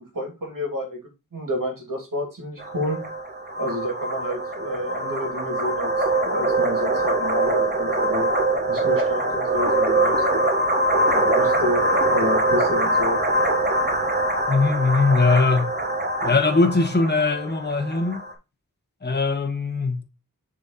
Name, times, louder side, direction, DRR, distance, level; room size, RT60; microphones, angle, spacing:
voice 1, 0.1-1.0 1.3-3.0 3.6-5.9 6.2-8.3 8.7-10.2 11.1-13.2, left 1 dB, 70° right, 2.7 m, -29 dB
sound 1, 2.6-18.3, right 1 dB, 30° right, 1.5 m, -23 dB
voice 2, 14.5-15.7 16.2-18.2 19.0-20.0, left 3 dB, 30° left, 1.1 m, -20 dB
6.9 x 4.0 x 4.0 m
wide cardioid pair, 60°, 34 cm